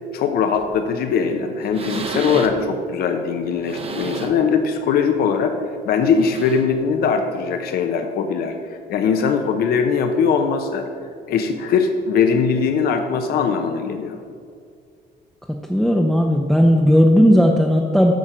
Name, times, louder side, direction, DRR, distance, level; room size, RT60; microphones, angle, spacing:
voice 1, 0.1-5.5 5.9-8.5 8.9-10.9 11.3-14.2, left 6 dB, 65° left, 6 dB, 0.8 m, -20 dB
sound 1, 0.5-0.8 1.3-1.4 1.6-2.7 3.4-4.5 5.0-5.1 6.0-6.8 7.8-7.9, right 4 dB, 35° right, 0.9 m, -32 dB
voice 2, 15.5-18.1, equal, ahead, 1 dB, 0.6 m, -15 dB
8.6 x 5.9 x 5.0 m, 2.2 s
cardioid pair, 110°, 17 cm